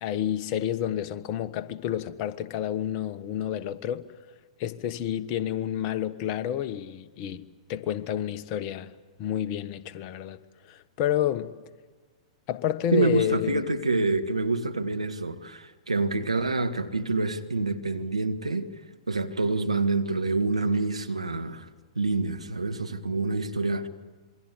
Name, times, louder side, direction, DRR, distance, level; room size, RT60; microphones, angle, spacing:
voice 1, 0.0-4.1 4.6-8.9 9.2-10.4 10.7-11.5 12.5-13.7, left 11 dB, 40° left, 1.3 m, -29 dB
voice 2, 12.9-18.7 19.1-21.7 22.0-23.9, right 3 dB, 90° right, 1.7 m, -27 dB
27.5 x 22.5 x 8.5 m
figure-of-eight pair, 110°, 3 cm